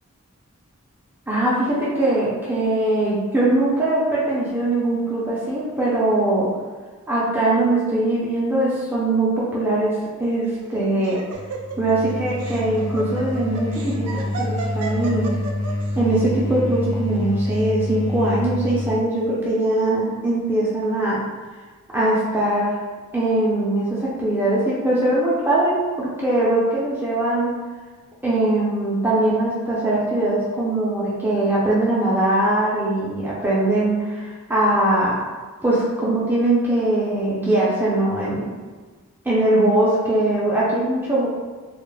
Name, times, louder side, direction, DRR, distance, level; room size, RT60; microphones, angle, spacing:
voice 1, 1.3-6.5 7.1-11.2 11.8-15.4 16.0-21.2 21.9-22.8 23.1-27.5 28.2-35.2 35.6-38.5 39.2-41.3, right 1 dB, 10° right, -7 dB, 0.4 m, -21 dB
Laughter, 10.4-15.9, right 4 dB, 90° right, 0.4 m, -33 dB
sound 1, 11.3-19.1, left 1 dB, 85° left, 0.4 m, -27 dB
2.2 x 2.0 x 3.1 m, 1.4 s
head